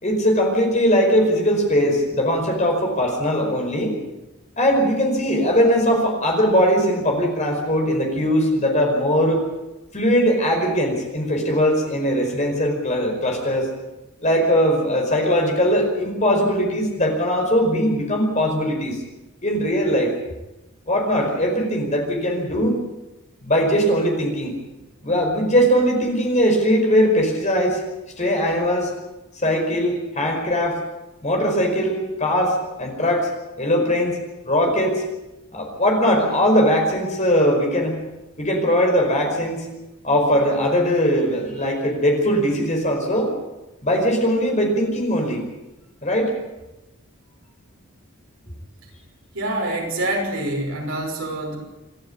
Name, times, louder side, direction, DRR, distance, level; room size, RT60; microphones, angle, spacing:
voice 1, 0.0-4.0 4.6-9.4 9.9-13.7 14.2-19.0 19.4-20.1 20.9-22.8 23.4-24.5 25.0-27.8 28.2-28.9 29.4-30.8 31.2-33.3 33.6-34.2 34.4-35.0 35.5-38.0 38.4-39.6 40.0-43.3 43.8-45.4 46.0-46.3, equal, 30° left, 2 dB, 5.1 m, -20 dB
voice 2, 49.3-51.6, right 1 dB, 65° right, 1 dB, 5.9 m, -26 dB
27.5 x 12.0 x 8.6 m, 1.0 s
head